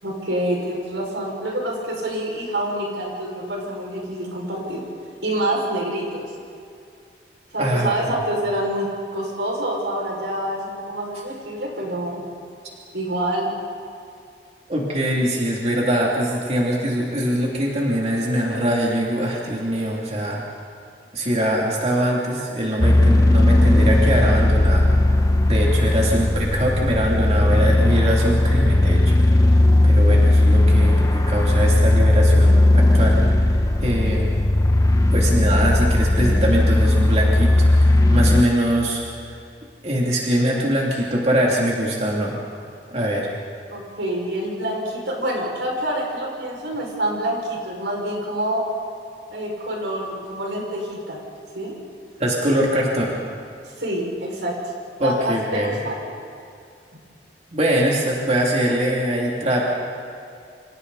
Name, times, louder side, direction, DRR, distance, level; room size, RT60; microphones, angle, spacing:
voice 1, 0.0-4.9 5.2-6.3 7.5-12.2 12.9-13.6 43.7-48.7 49.3-51.2 51.5-51.8 53.8-54.6 55.0-56.0, right 1 dB, 90° right, -1 dB, 5.9 m, -26 dB
voice 2, 7.6-7.9 14.7-20.4 21.1-24.8 25.5-34.4 35.1-39.3 39.8-42.4 42.9-43.3 52.2-53.1 55.0-55.7 57.5-59.7, equal, 40° right, -3 dB, 3.0 m, -23 dB
sound 1, 22.8-38.4, left 1 dB, 20° left, 1.0 m, -16 dB
29.0 x 26.0 x 4.2 m, 2.4 s
head